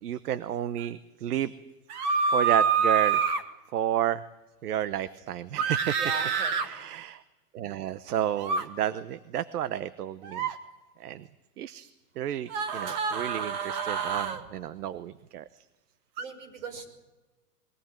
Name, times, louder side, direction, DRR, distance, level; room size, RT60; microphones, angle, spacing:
voice 1, 0.0-1.5 2.3-3.2 3.7-4.2 4.6-6.0 6.6-7.2 7.5-10.5 11.0-11.3 11.6-11.9 12.2-15.4, right 11 dB, 70° right, 14 dB, 1.0 m, -31 dB
sound 1, 1.9-3.4 5.6-6.7 8.4-8.6 10.2-10.5 12.5-14.4 16.2-16.3, right 6 dB, 30° right, 1.3 m, -27 dB
voice 2, 5.9-6.6 16.2-16.9, right 4 dB, 50° right, 7 dB, 5.6 m, -38 dB
21.5 x 17.5 x 8.9 m, 1.1 s
supercardioid pair, 180°, 48 cm